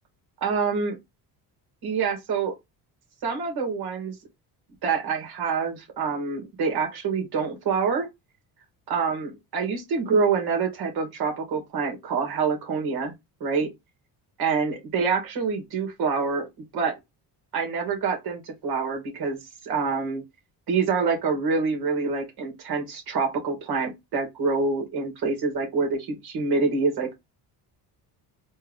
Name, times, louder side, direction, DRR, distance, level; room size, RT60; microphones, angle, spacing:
voice 1, 0.4-1.0 1.8-2.5 3.2-4.1 4.8-8.1 8.9-13.1 13.4-13.7 14.4-16.5 16.7-17.0 17.5-20.2 20.7-27.1, right 5 dB, 60° right, 2.4 m, -26 dB
4.4 x 2.7 x 3.6 m
cardioid pair, 100°, 42 cm